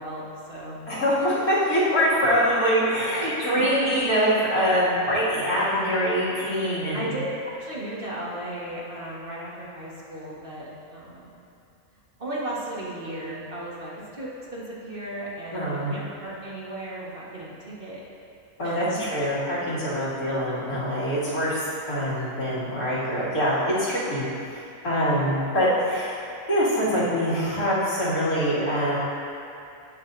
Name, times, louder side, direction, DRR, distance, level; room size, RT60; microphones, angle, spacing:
voice 1, 0.0-0.8 3.7-3.8 6.9-11.4 12.2-17.5 17.8-18.0 18.6-19.0, right 1 dB, 40° right, -7 dB, 1.7 m, -35 dB
voice 2, 0.9-7.0 15.5-16.0 18.6-26.2 26.5-29.0, equal, 85° left, -10 dB, 2.9 m, -24 dB
18.0 x 6.0 x 2.7 m, 2.6 s
omnidirectional pair, 1.5 m